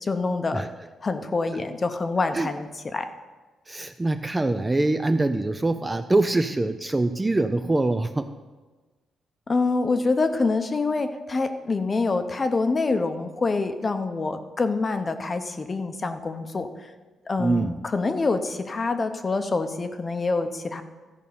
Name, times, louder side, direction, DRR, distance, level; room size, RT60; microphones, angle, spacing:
voice 1, 0.0-0.6 1.0-3.1 9.5-16.7 17.3-20.8, left 3 dB, 25° left, 8 dB, 0.8 m, -26 dB
voice 2, 3.7-8.3 17.4-17.8, right 2 dB, 15° right, 8 dB, 0.4 m, -24 dB
13.5 x 5.3 x 7.0 m, 1.3 s
cardioid pair, 140°, 0 cm